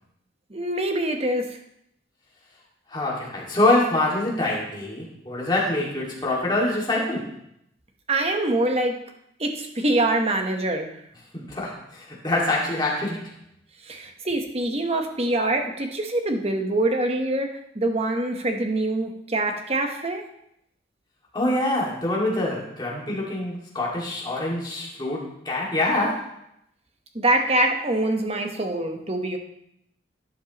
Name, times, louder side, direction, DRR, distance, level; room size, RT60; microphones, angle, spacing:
voice 1, 0.5-1.6 8.1-8.9 9.4-10.9 13.8-20.2 27.1-29.4, right 1 dB, 30° right, 4 dB, 1.1 m, -24 dB
voice 2, 2.9-7.4 11.3-13.3 21.3-26.4, left 2 dB, 20° left, -4 dB, 2.1 m, -25 dB
12.0 x 8.6 x 3.0 m, 0.75 s
head